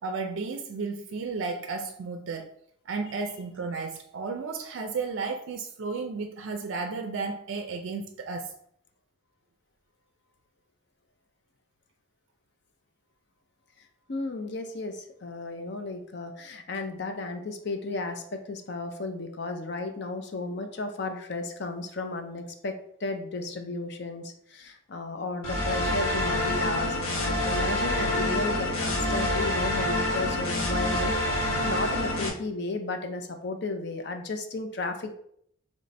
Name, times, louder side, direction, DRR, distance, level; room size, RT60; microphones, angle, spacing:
voice 1, 0.0-2.5 2.9-8.6, right 4 dB, 65° right, 0.4 m, -33 dB
voice 2, 13.8-35.1, left 3 dB, 55° left, 0.5 m, -34 dB
sound 1, 25.4-32.3, left 1 dB, 85° left, 1.0 m, -27 dB
3.2 x 3.1 x 4.0 m
head